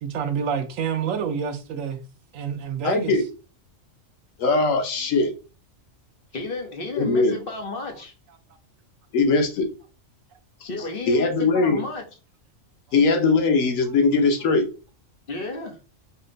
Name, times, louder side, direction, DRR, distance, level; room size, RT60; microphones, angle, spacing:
voice 1, 0.0-2.0 2.3-3.1, right 7 dB, 90° right, 1.1 m, -28 dB
voice 2, 2.8-3.2 4.4-5.3 7.0-7.3 9.1-9.7 10.6-10.7 11.1-11.8 12.9-14.6, left 3 dB, 85° left, 1.2 m, -20 dB
voice 3, 6.3-8.1 10.7-12.0 15.3-15.8, left 3 dB, 50° left, 1.0 m, -32 dB
4.2 x 2.1 x 3.8 m
omnidirectional pair, 1.3 m